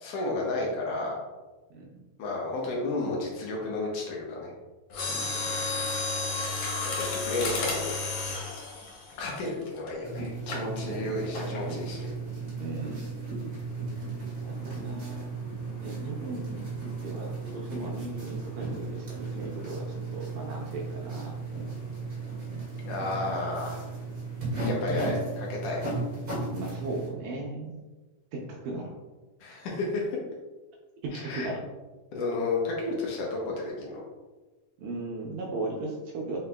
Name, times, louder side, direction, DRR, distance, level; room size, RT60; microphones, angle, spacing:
voice 1, 0.0-1.2 2.2-4.5 6.9-7.9 9.2-12.1 22.8-23.8 24.6-25.8 29.4-30.0 31.1-31.5 32.1-34.0, left 2 dB, 85° left, -2 dB, 1.3 m, -32 dB
Mechanisms, 4.9-9.9 10.5-10.7 11.3-11.7 12.0-12.1, left 3 dB, 70° left, 2.2 m, -32 dB
voice 2, 5.1-5.8 10.9-11.8 12.6-13.3 14.0-14.1 14.4-15.3 15.8-21.7 26.5-27.8 28.3-28.9 31.0-31.6 34.8-36.4, right 2 dB, 80° right, -1 dB, 1.7 m, -37 dB
sound 1, 10.0-27.1, right 3 dB, 45° right, 0.9 m, -35 dB
4.7 x 4.2 x 2.2 m, 1.2 s
omnidirectional pair, 3.8 m